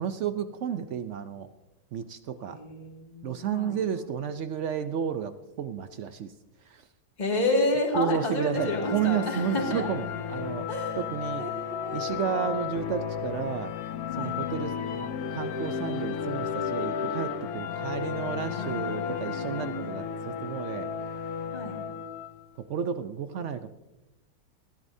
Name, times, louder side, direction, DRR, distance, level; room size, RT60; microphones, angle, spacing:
voice 1, 0.0-1.5 1.9-2.6 3.2-5.3 5.6-6.3 6.6-6.9 8.0-10.7 11.0-11.4 11.9-13.7 14.2-20.9 22.7-23.7, right 8 dB, 65° right, 11 dB, 0.7 m, -32 dB
voice 2, 2.5-3.8 7.2-9.9 10.7-11.0 11.4-12.0 14.1-14.3 16.5-17.2 18.5-20.0 20.3-20.7 21.5-21.8, left 2 dB, 25° left, 0 dB, 2.2 m, -31 dB
sound 1, 8.5-22.4, left 7 dB, 65° left, 1.3 m, -33 dB
20.5 x 14.5 x 2.7 m, 1.0 s
omnidirectional pair, 1.8 m